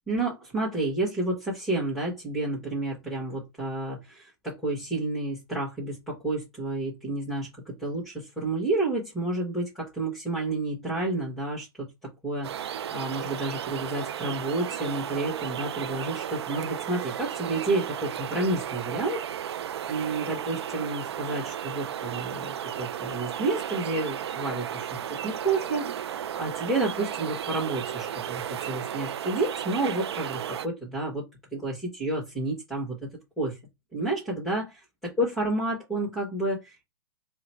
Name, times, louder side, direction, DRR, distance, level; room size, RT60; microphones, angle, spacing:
voice 1, 0.1-19.2 19.9-31.2 31.5-33.1 33.4-33.6 33.9-34.7 35.0-36.8, right 2 dB, ahead, 1.5 m, -30 dB
sound 1, 12.4-30.7, right 9 dB, 75° right, 0.4 m, -34 dB
3.8 x 2.2 x 4.3 m
hypercardioid pair, 135°, 14 cm